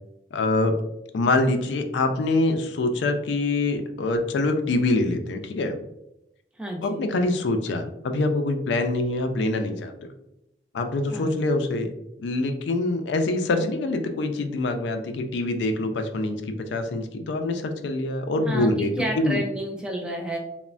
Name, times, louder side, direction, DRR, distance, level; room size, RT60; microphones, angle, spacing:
voice 1, 0.3-0.7 1.1-5.8 6.8-9.9 10.7-11.9 12.2-18.9 19.2-19.4, left 2 dB, 85° left, 6 dB, 0.3 m, -25 dB
voice 2, 6.6-7.0 11.1-11.4 18.4-20.4, right 1 dB, 5° right, 0 dB, 0.3 m, -31 dB
3.1 x 2.0 x 2.4 m, 0.86 s
head